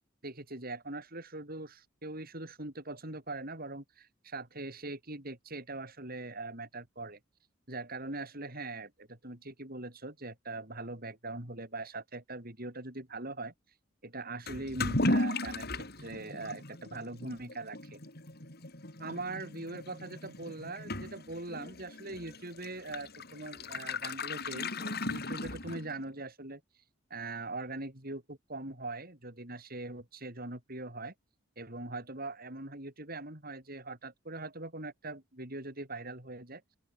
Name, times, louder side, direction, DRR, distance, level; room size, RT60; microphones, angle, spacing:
voice 1, 0.2-7.2 7.7-13.5 14.0-18.0 19.0-26.6 27.1-31.1 31.6-36.6, right 2 dB, 50° right, 7.0 m, -41 dB
Toilet flush / Liquid, 14.5-26.1, left 2 dB, 50° left, 6.2 m, -36 dB
open air
head